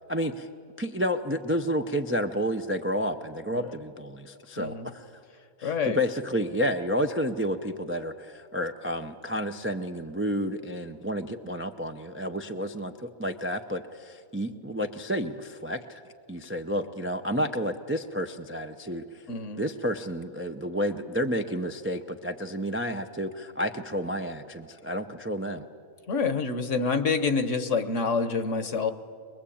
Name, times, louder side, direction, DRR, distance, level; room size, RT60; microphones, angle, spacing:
voice 1, 0.1-0.5 0.8-5.1 5.6-16.0 16.3-19.2 19.6-25.6, equal, 15° right, 5 dB, 0.4 m, -30 dB
voice 2, 4.6-4.9 5.6-6.0 17.6-17.7 19.3-19.6 26.1-28.9, left 4 dB, 55° left, 10 dB, 1.4 m, -27 dB
23.5 x 21.0 x 8.6 m, 2.3 s
omnidirectional pair, 1.6 m